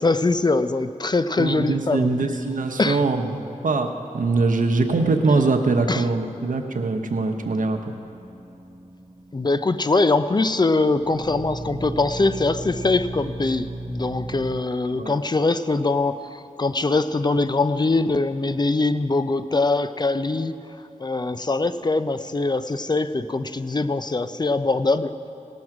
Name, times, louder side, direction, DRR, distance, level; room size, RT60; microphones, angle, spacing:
voice 1, 0.0-2.1 2.8-3.0 5.9-6.0 9.3-20.5 21.0-25.1, left 3 dB, 30° left, 11 dB, 0.5 m, -22 dB
voice 2, 1.4-7.8 14.9-15.2, right 3 dB, 80° right, 4 dB, 0.9 m, -22 dB
sound 1, 7.7-14.6, right 2 dB, 10° right, 1.2 m, -37 dB
18.5 x 6.3 x 5.9 m, 2.7 s
wide cardioid pair, 60°, 14 cm